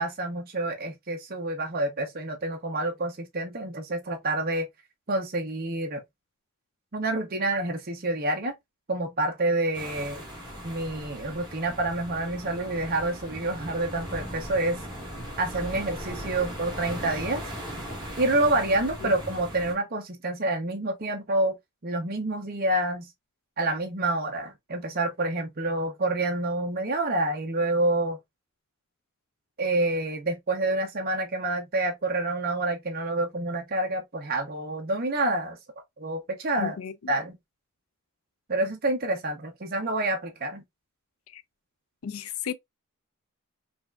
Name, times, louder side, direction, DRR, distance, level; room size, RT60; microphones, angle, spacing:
voice 1, 0.0-4.7 5.1-6.0 6.9-8.5 8.9-10.2 10.6-14.8 15.4-17.4 18.2-21.6 21.8-23.1 23.6-28.2 29.6-35.6 36.0-36.8 37.1-37.4 38.5-40.6, right 2 dB, 45° right, 0.8 m, -28 dB
sound 1, 9.7-19.7, equal, 20° right, 1.8 m, -38 dB
voice 2, 36.6-37.1 41.3-41.4 42.0-42.5, left 7 dB, 90° left, 0.5 m, -34 dB
4.9 x 2.5 x 2.3 m
head